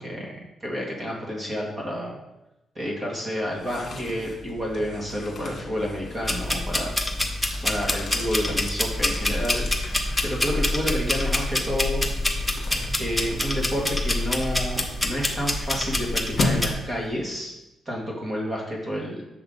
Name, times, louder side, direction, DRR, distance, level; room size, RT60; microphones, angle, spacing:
voice 1, 0.0-2.2 2.8-6.9 7.6-9.7 10.2-12.0 13.0-17.5 17.9-19.2, equal, 25° right, -2 dB, 2.0 m, -30 dB
sound 1, 3.4-17.4, left 2 dB, 50° left, 1.5 m, -36 dB
sound 2, 6.2-16.7, left 1 dB, 5° left, 0.9 m, -26 dB
6.9 x 5.8 x 3.9 m, 0.94 s
cardioid pair, 125°, 0 cm